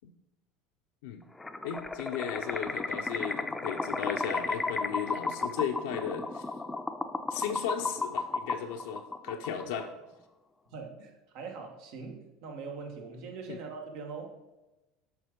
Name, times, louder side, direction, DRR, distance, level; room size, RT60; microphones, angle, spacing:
sound 1, 1.4-9.9, left 3 dB, 10° left, 0.5 m, -34 dB
voice 1, 1.6-6.4 7.3-9.9 13.5-13.6, left 8 dB, 80° left, 3 dB, 0.6 m, -35 dB
voice 2, 10.7-14.4, right 4 dB, 65° right, 3 dB, 1.3 m, -42 dB
7.0 x 3.6 x 5.1 m, 1.0 s
hypercardioid pair, 90°, 0 cm